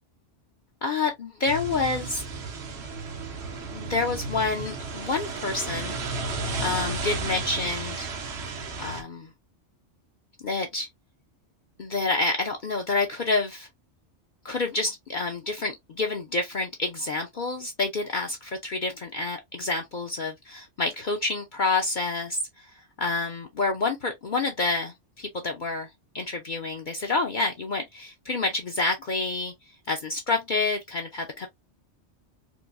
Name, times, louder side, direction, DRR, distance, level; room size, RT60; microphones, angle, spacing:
voice 1, 0.8-2.2 3.7-6.0 6.6-8.1 8.8-9.3 10.4-10.9 11.8-13.7 14.4-22.4 23.0-25.9 26.1-29.5 29.9-31.5, left 3 dB, 50° left, 0.7 m, -28 dB
sound 1, 1.5-9.0, right 3 dB, 65° right, 1.0 m, -33 dB
4.5 x 2.1 x 2.5 m
omnidirectional pair, 1.2 m